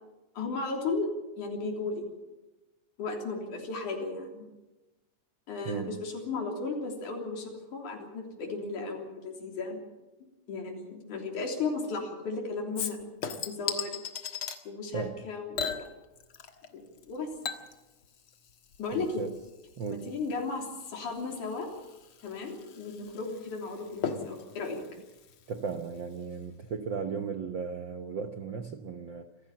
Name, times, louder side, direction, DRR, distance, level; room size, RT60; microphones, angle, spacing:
voice 1, 0.3-1.1 1.4-2.1 3.0-4.4 5.5-9.8 10.5-13.0 13.5-14.0 14.6-15.8 16.7-17.3 18.8-19.2 19.9-21.7 22.2-24.8, left 3 dB, 80° left, 1 dB, 4.9 m, -35 dB
voice 2, 5.6-6.0 14.9-15.2 19.0-19.3 19.8-20.1 25.5-29.3, right 5 dB, 65° right, 6 dB, 1.1 m, -36 dB
Chink clink / Liquid, 12.8-14.6 15.6-16.7 17.0-26.0 26.3-26.4, left 6 dB, 50° left, 2.0 m, -39 dB
27.0 x 15.5 x 7.3 m, 1.1 s
omnidirectional pair, 3.5 m